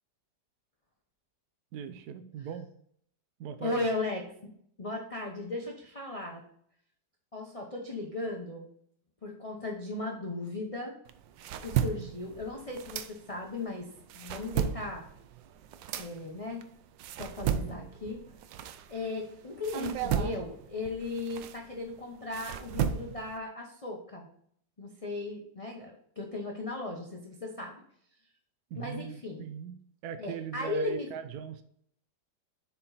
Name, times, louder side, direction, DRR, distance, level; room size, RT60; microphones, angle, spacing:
voice 1, 1.7-2.7 3.4-3.8 28.7-29.7 30.0-31.6, right 8 dB, 70° right, 9 dB, 1.0 m, -40 dB
voice 2, 3.6-4.5 4.8-6.4 7.3-8.7 9.2-11.0 11.6-13.9 14.1-15.0 15.9-16.6 17.2-18.2 18.9-24.3 24.8-27.7 28.7-29.5 30.2-31.1, left 2 dB, 30° left, 0 dB, 0.6 m, -36 dB
sound 1, 11.1-13.6 14.0-19.3 19.6-23.4, right 9 dB, 90° right, 1.3 m, -34 dB
7.1 x 4.6 x 4.0 m, 0.66 s
omnidirectional pair, 2.0 m